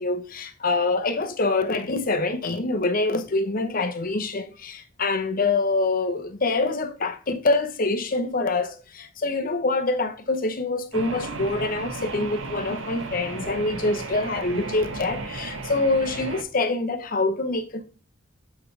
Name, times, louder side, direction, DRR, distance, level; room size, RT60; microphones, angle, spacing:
voice 1, 0.0-17.8, left 3 dB, 45° left, 0.9 m, -25 dB
sound 1, 10.9-16.4, right 3 dB, 80° right, 0.9 m, -34 dB
8.3 x 4.8 x 3.3 m
head